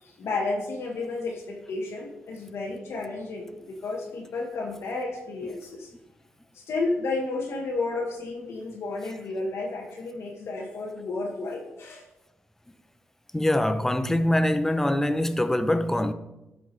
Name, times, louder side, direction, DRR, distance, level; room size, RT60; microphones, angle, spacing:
voice 1, 0.0-5.9 6.5-12.1, left 3 dB, 65° left, 1.2 m, -32 dB
voice 2, 13.3-16.1, left 1 dB, 10° left, 0.6 m, -23 dB
13.0 x 5.8 x 3.2 m
cardioid pair, 95°, 5 cm